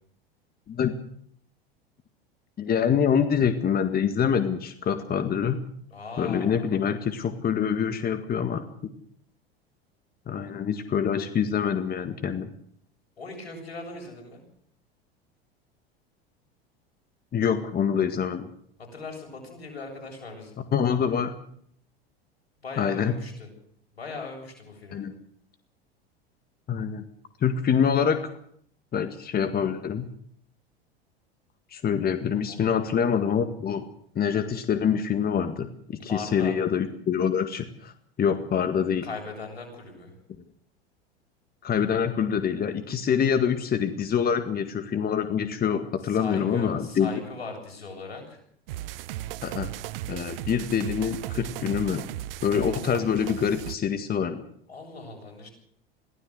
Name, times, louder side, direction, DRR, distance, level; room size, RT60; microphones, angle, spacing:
voice 1, 2.6-5.6 6.2-8.6 10.3-12.5 17.3-18.5 20.7-21.3 22.8-23.1 24.9-25.1 26.7-27.0 27.4-28.3 28.9-30.1 31.7-33.9 34.2-37.9 38.2-39.1 41.6-47.1 49.4-49.7 50.1-52.1 52.4-54.4, left 7 dB, 30° left, 9 dB, 1.9 m, -25 dB
voice 2, 5.9-6.7 13.2-14.4 18.8-20.6 22.6-23.5 23.9-25.1 32.5-32.8 36.1-36.6 39.0-40.1 46.0-48.4 54.7-55.5, left 3 dB, 85° left, 3 dB, 7.7 m, -39 dB
sound 1, 48.7-53.8, right 14 dB, 65° right, 0.9 m, -36 dB
22.5 x 16.0 x 7.9 m, 0.65 s
hypercardioid pair, 85°, 31 cm